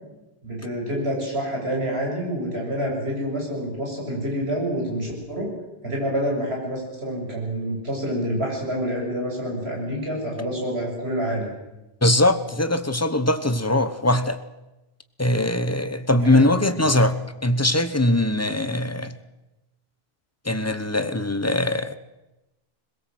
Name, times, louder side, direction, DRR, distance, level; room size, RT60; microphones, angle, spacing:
voice 1, 0.4-5.5 5.8-11.5 16.1-16.5, equal, 80° right, -1 dB, 7.5 m, -27 dB
voice 2, 12.0-14.4 15.2-19.1 20.4-22.0, left 1 dB, 15° left, 11 dB, 1.0 m, -21 dB
21.5 x 21.0 x 7.8 m, 1.0 s
omnidirectional pair, 1.0 m